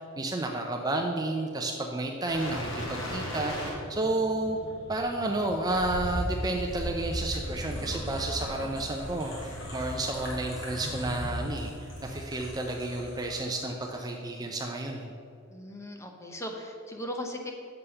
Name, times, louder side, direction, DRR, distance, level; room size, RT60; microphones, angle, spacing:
voice 1, 0.2-4.6 4.9-15.1, right 2 dB, 20° right, 2 dB, 0.5 m, -31 dB
sound 1, 2.3-13.5 13.8-13.9, equal, 60° left, 2.3 m, -37 dB
voice 2, 15.5-17.5, equal, 15° left, 2 dB, 0.8 m, -38 dB
7.0 x 5.3 x 6.8 m, 2.4 s
head